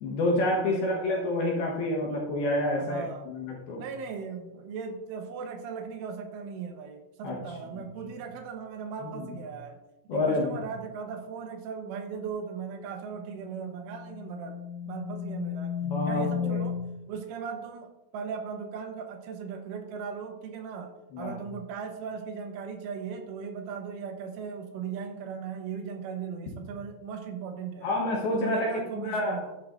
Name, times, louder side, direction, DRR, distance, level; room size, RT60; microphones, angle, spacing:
voice 1, 0.0-3.8 7.2-7.4 7.7-7.8 9.0-9.3 10.1-10.6 15.8-16.6 21.1-21.4 27.8-29.4, left 1 dB, 65° left, -2 dB, 2.7 m, -28 dB
voice 2, 0.6-1.3 2.7-3.3 3.8-9.7 10.1-14.6 14.9-15.7 16.1-16.8 17.1-17.9 18.1-27.9 28.3-29.6, right 6 dB, 80° right, 4 dB, 3.5 m, -38 dB
sound 1, 13.1-17.0, left 8 dB, 90° left, 4.5 m, -34 dB
11.0 x 10.5 x 2.6 m, 0.97 s
omnidirectional pair, 5.8 m